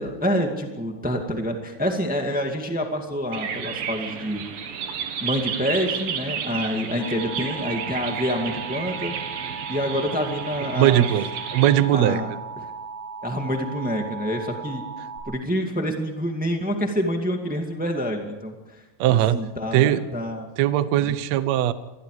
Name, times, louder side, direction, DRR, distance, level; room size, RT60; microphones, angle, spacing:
voice 1, 0.0-4.4 5.2-9.2 9.7-11.0 11.9-12.7 13.2-14.8 15.2-18.8 19.1-20.5 21.0-21.1, equal, 10° right, 3 dB, 0.4 m, -27 dB
sound 1, 3.3-11.7, right 7 dB, 70° right, 3.5 m, -32 dB
Alarm, 7.0-15.2, right 4 dB, 30° left, 7.0 m, -37 dB
voice 2, 10.8-11.3 11.5-12.2 19.0-19.4 19.7-20.0 20.6-21.7, right 13 dB, 90° right, 13 dB, 1.5 m, -19 dB
28.0 x 21.5 x 5.0 m, 1.1 s
omnidirectional pair, 4.4 m